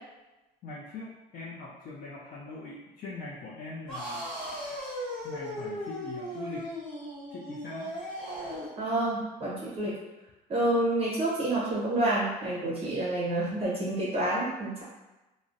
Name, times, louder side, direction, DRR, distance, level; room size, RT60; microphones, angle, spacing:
voice 1, 0.6-4.3 5.2-6.7 7.3-7.9, left 3 dB, 55° left, -5 dB, 0.4 m, -41 dB
sound 1, 3.9-8.8, equal, 5° left, 0.9 m, -37 dB
voice 2, 8.8-10.0 10.5-14.8, right 1 dB, 35° right, -6 dB, 0.7 m, -28 dB
2.4 x 2.0 x 2.5 m, 1.0 s
cardioid pair, 110°, 17 cm